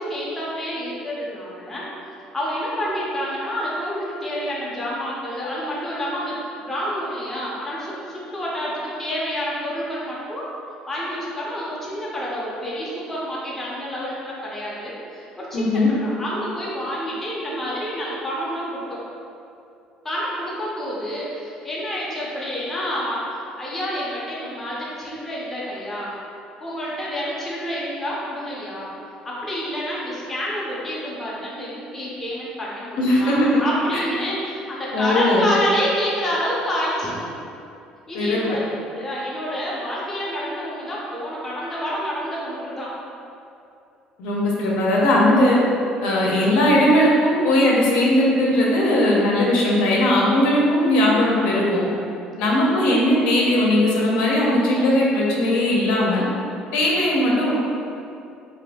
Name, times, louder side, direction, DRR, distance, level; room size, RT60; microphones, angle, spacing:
voice 1, 0.0-1.9 2.3-10.4 10.9-19.0 20.0-26.2 26.6-28.9 29.2-37.1 38.1-38.6 38.9-42.9, equal, 10° left, -7 dB, 0.5 m, -28 dB
voice 2, 15.5-15.9 33.0-33.6 33.9-34.0 34.9-35.5 38.1-38.4 44.2-45.6 46.0-51.8 52.4-56.2 56.7-57.5, left 1 dB, 90° left, -4 dB, 0.6 m, -18 dB
2.6 x 2.5 x 3.5 m, 2.6 s
cardioid pair, 170°, 2 cm